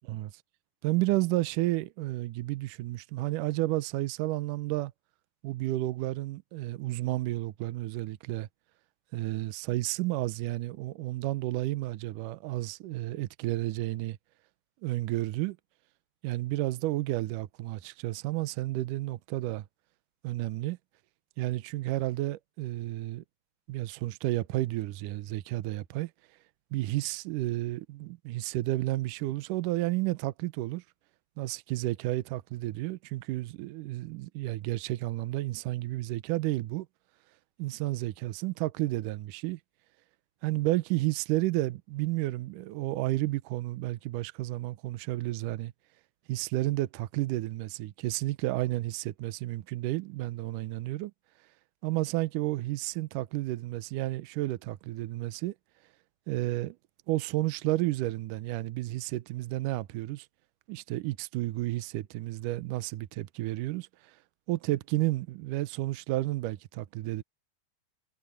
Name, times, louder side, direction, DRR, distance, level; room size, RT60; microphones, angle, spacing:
voice 1, 0.8-4.9 5.4-8.5 9.1-14.2 14.8-15.6 16.2-19.7 20.2-20.8 21.4-23.2 23.7-26.1 26.7-30.8 31.4-36.9 37.6-39.6 40.4-45.7 46.3-51.1 51.8-55.6 56.3-56.8 57.1-60.3 60.7-64.2 64.5-67.2, right 17 dB, 75° right, 2.1 m, -31 dB
omnidirectional pair, 4.3 m